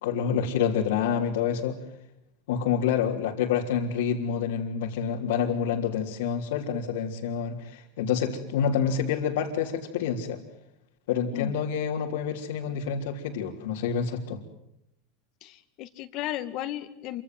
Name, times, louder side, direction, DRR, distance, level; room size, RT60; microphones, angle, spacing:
voice 1, 0.0-1.8 2.5-10.4 11.1-14.4, left 7 dB, 85° left, -4 dB, 3.5 m, -28 dB
voice 2, 15.4-17.2, left 13 dB, 50° left, 8 dB, 2.0 m, -34 dB
27.5 x 26.0 x 7.7 m, 0.80 s
supercardioid pair, 140°, 0 cm